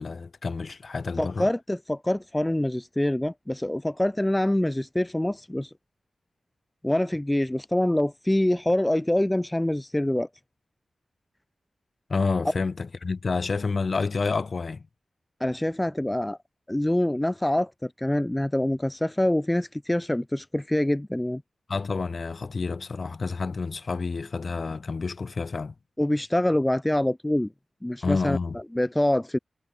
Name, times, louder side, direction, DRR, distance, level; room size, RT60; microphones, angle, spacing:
voice 1, 0.0-1.5 12.1-14.8 21.7-25.7 28.0-28.6, left 4 dB, 60° left, 1.4 m, -29 dB
voice 2, 1.2-5.7 6.8-10.3 15.4-16.4 16.7-21.4 26.0-27.5 27.8-28.4 28.7-29.4, left 1 dB, 15° left, 0.6 m, -25 dB
cardioid pair, 50°, 0 cm